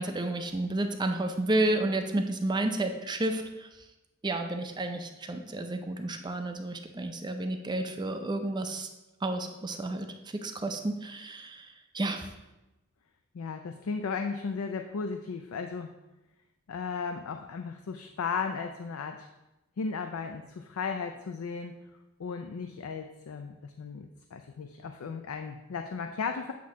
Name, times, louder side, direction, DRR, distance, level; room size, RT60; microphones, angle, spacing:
voice 1, 0.0-3.7 4.2-8.9 9.2-10.1 10.3-12.3, right 2 dB, 20° right, 5 dB, 0.4 m, -31 dB
voice 2, 13.3-15.9 16.7-19.3 19.8-21.8 22.2-26.5, left 5 dB, 80° left, 6 dB, 0.4 m, -35 dB
8.3 x 2.8 x 6.0 m, 1.0 s
head